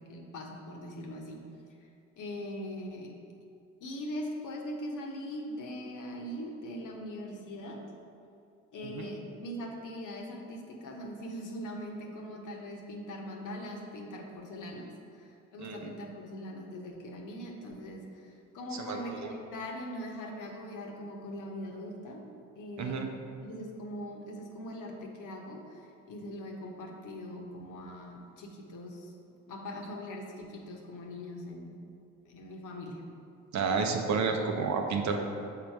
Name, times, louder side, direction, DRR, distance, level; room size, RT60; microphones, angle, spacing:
voice 1, 0.0-1.4 2.2-3.2 3.8-7.8 8.7-22.3 22.5-23.2 23.4-29.1 29.5-31.9 32.2-33.0, equal, 55° left, 1 dB, 1.1 m, -41 dB
voice 2, 15.6-15.9 18.7-19.3 22.8-23.1 33.5-35.2, right 5 dB, 50° right, 4 dB, 0.7 m, -31 dB
6.7 x 3.7 x 4.5 m, 2.5 s
figure-of-eight pair, 45°, 37 cm